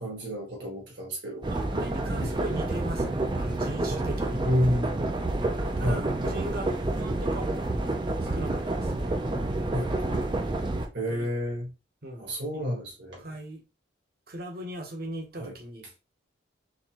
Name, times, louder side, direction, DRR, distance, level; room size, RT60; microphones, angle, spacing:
voice 1, 0.0-1.5 2.2-2.3 3.0-3.1 4.4-5.0 5.8-6.1 9.7-10.0 10.9-11.7 12.2-13.3 15.4-15.5, equal, 70° right, 1.7 m, -29 dB
sound 1, 1.4-10.9, right 2 dB, 25° right, 0.5 m, -29 dB
voice 2, 1.5-4.5 5.8-7.5 8.2-9.1 11.1-11.3 12.0-12.6 13.2-13.6 14.3-15.9, right 1 dB, 55° right, 1.1 m, -39 dB
4.1 x 3.4 x 3.0 m
head